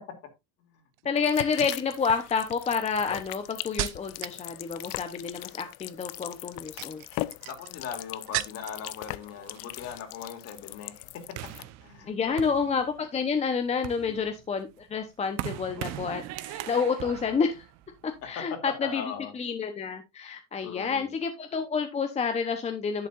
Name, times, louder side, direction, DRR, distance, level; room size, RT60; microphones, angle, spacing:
sound 1, 0.9-1.3 2.0-4.4 4.7-5.2 6.5-8.9 9.2-9.9 10.1-10.4, right 19 dB, 85° right, 0.6 m, -37 dB
voice 1, 1.0-7.0 12.1-17.7 18.0-23.1, left 5 dB, 20° left, 0.9 m, -29 dB
sound 2, 1.2-11.6, left 19 dB, 80° left, 0.6 m, -40 dB
voice 2, 7.5-11.0 11.8-12.4 18.7-19.3 20.6-21.1, left 7 dB, 50° left, 2.9 m, -39 dB
sound 3, 11.4-13.2 13.6-18.3, right 14 dB, 60° right, 0.9 m, -40 dB
11.0 x 8.2 x 2.5 m
cardioid pair, 135°, 30 cm